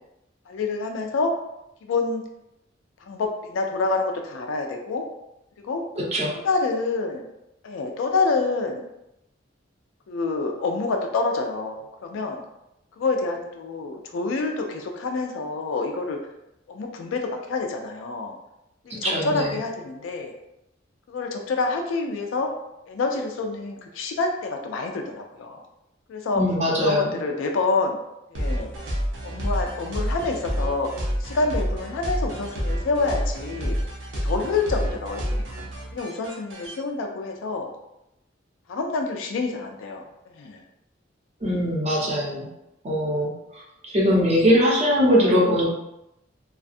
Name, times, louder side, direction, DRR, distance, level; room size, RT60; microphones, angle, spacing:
voice 1, 0.5-1.3 1.8-2.2 3.0-5.0 5.6-5.8 6.4-7.3 7.6-8.9 10.1-12.4 13.0-16.2 16.7-18.3 18.9-20.3 21.1-22.5 22.9-25.6 26.1-26.4 26.8-28.0 28.3-28.7 29.2-30.9 31.2-33.8 34.2-35.2 35.9-37.7 38.7-40.1 40.3-40.6, left 3 dB, 85° left, 3 dB, 0.3 m, -27 dB
voice 2, 6.0-6.3 18.9-19.5 26.3-27.1 41.4-42.5 42.8-43.3 43.8-45.7, equal, 35° right, -4 dB, 0.7 m, -21 dB
sound 1, 28.3-36.8, equal, 75° right, 0.7 m, -28 dB
2.4 x 2.3 x 2.5 m, 0.87 s
head